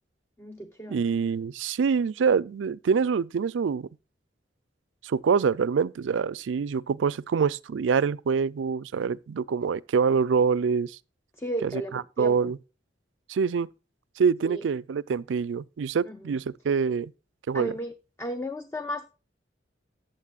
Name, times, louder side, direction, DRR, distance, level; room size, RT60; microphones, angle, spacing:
voice 1, 0.4-1.0 11.4-12.5 14.5-14.6 16.0-16.4 17.5-17.9 18.2-19.1, equal, 15° left, 0.5 m, -34 dB
voice 2, 0.9-3.9 5.0-11.0 11.6-11.7 12.2-12.6 13.3-13.7 14.2-17.1 17.5-17.7, right 6 dB, 90° right, 0.4 m, -25 dB
14.0 x 8.9 x 2.4 m
head